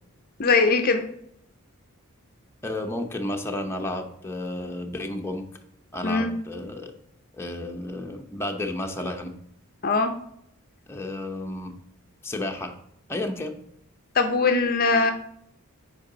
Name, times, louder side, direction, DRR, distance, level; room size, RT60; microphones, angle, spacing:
voice 1, 0.4-1.0 6.0-6.3 9.8-10.1 14.2-15.1, left 4 dB, 40° left, 6 dB, 0.6 m, -21 dB
voice 2, 2.6-5.4 5.9-6.9 7.4-9.3 10.9-11.7 12.2-12.7 13.1-13.6, left 1 dB, 10° left, 2 dB, 0.8 m, -32 dB
8.6 x 4.7 x 3.9 m, 0.75 s
head